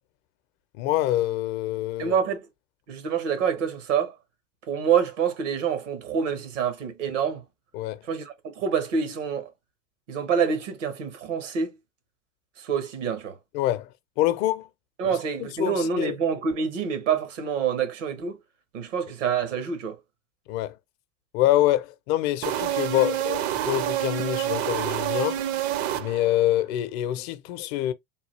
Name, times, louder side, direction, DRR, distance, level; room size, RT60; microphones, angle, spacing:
voice 1, 0.8-2.2 7.7-8.0 13.5-13.9 14.2-14.7 15.0-16.2 20.5-20.7 21.3-25.4 25.9-27.9, left 14 dB, 60° left, 0.6 m, -26 dB
voice 2, 2.0-2.5 2.9-4.1 4.7-7.4 8.1-9.5 10.1-11.7 12.6-13.4 15.0-18.4 18.7-20.0, right 7 dB, 75° right, 1.2 m, -26 dB
sound 1, 22.4-26.5, right 12 dB, 50° right, 0.6 m, -28 dB
3.7 x 2.3 x 3.1 m
hypercardioid pair, 85°, 37 cm